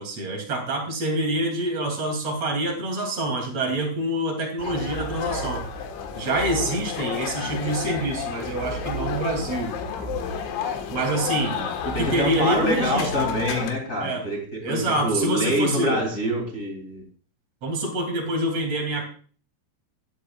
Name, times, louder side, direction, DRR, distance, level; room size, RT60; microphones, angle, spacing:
voice 1, 0.0-5.7 6.1-9.7 10.4-10.5 10.9-11.6 11.8-13.3 14.0-14.2 14.6-16.0 17.6-19.0, right 1 dB, 40° right, 3 dB, 3.0 m, -26 dB
sound 1, 4.6-13.7, left 5 dB, 70° left, 3.6 m, -30 dB
voice 2, 11.5-17.0, equal, 25° left, -1 dB, 2.0 m, -26 dB
16.0 x 12.0 x 2.4 m, 0.41 s
omnidirectional pair, 6.0 m